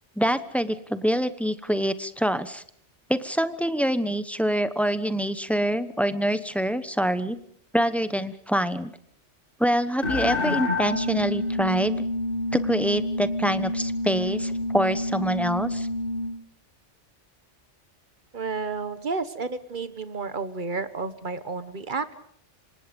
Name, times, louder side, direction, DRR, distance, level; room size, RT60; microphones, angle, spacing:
voice 1, 0.2-2.6 3.1-7.4 7.7-8.9 9.6-12.0 12.5-15.9, equal, ahead, 12 dB, 1.0 m, -25 dB
sound 1, 10.0-16.4, left 1 dB, 50° left, 2.0 m, -28 dB
voice 2, 18.3-22.1, right 4 dB, 45° right, 12 dB, 1.5 m, -31 dB
27.0 x 25.5 x 5.3 m, 0.64 s
omnidirectional pair, 1.2 m